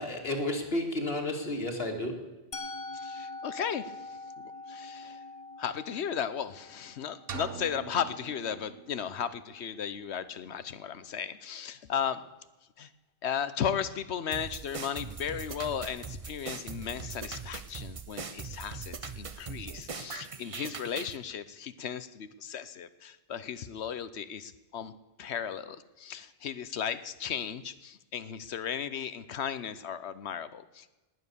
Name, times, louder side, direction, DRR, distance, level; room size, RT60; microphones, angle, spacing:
voice 1, 0.0-2.5, left 1 dB, 60° left, 3 dB, 2.3 m, -32 dB
Musical instrument, 2.5-8.4, left 3 dB, 35° left, 0.9 m, -44 dB
voice 2, 2.9-4.2 4.7-5.2 5.6-12.2 12.8-12.9 13.2-24.9 25.2-30.9, left 8 dB, 80° left, 14 dB, 1.1 m, -35 dB
sound 1, 7.3-9.2, right 8 dB, 60° right, 1.1 m, -43 dB
sound 2, 14.3-21.2, right 5 dB, 35° right, 0.8 m, -41 dB
19.0 x 9.6 x 6.9 m, 1.1 s
omnidirectional pair, 1.1 m